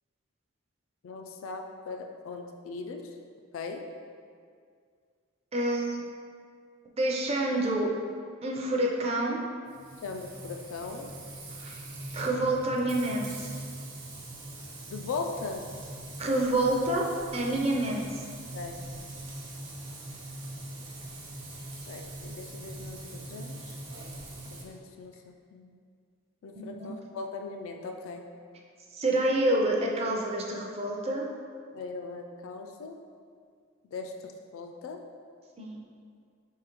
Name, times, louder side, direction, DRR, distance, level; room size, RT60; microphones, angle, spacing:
voice 1, 1.0-3.1 3.5-3.9 10.0-11.1 14.9-15.6 18.5-18.7 21.9-23.8 24.5-25.8 26.4-28.3 31.7-33.0 33.9-35.0, left 4 dB, 85° left, 4 dB, 0.3 m, -39 dB
voice 2, 5.5-6.0 7.0-7.9 8.4-9.4 11.6-11.7 12.1-13.5 16.2-17.1 17.3-18.1 26.5-26.9 28.9-31.3 35.6-35.8, right 1 dB, 30° right, -1 dB, 0.5 m, -27 dB
Frying (food), 9.7-24.6, right 1 dB, 60° right, 1.0 m, -42 dB
4.9 x 3.7 x 2.9 m, 2.1 s
head